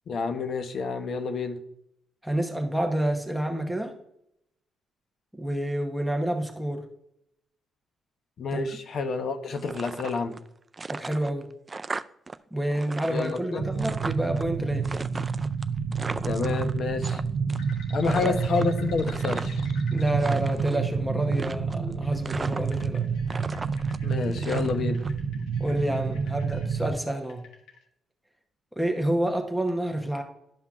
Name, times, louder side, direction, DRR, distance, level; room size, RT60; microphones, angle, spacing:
voice 1, 0.1-1.6 8.4-10.4 13.1-13.6 16.2-17.2 17.9-19.6 24.0-25.0, left 4 dB, 60° left, 8 dB, 0.7 m, -29 dB
voice 2, 2.2-3.9 5.3-6.9 8.5-8.6 10.9-11.5 12.5-14.9 18.0-18.3 19.9-23.0 25.6-27.4 28.8-30.2, right 1 dB, ahead, 3 dB, 0.9 m, -28 dB
sound 1, 9.6-10.5 10.7-12.4 12.6-14.4 14.8-17.2 17.5-17.8 18.0-19.7 20.1-20.8 21.3-21.9 22.2-23.0 23.3-25.1, right 3 dB, 25° right, 0.3 m, -37 dB
sound 2, 13.6-27.0, right 5 dB, 65° right, 0.7 m, -29 dB
sound 3, 17.6-27.8, left 3 dB, 90° left, 1.2 m, -47 dB
11.5 x 5.6 x 2.4 m, 0.78 s
cardioid pair, 90°, 0 cm